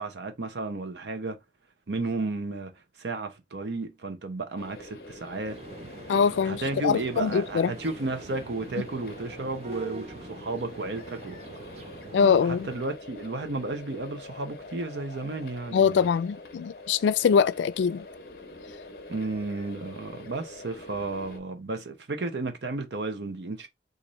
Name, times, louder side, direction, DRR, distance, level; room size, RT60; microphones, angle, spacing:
voice 1, 0.0-1.4 1.9-2.7 3.0-5.6 6.4-11.4 12.2-16.0 19.1-23.7, right 3 dB, 75° right, 0.7 m, -33 dB
sound 1, 4.6-21.4, left 2 dB, 55° left, 0.7 m, -45 dB
sound 2, 5.5-12.8, right 4 dB, 35° right, 0.4 m, -44 dB
voice 2, 6.1-7.7 12.1-12.7 15.7-18.0, left 6 dB, 85° left, 0.3 m, -23 dB
4.0 x 2.5 x 3.0 m
head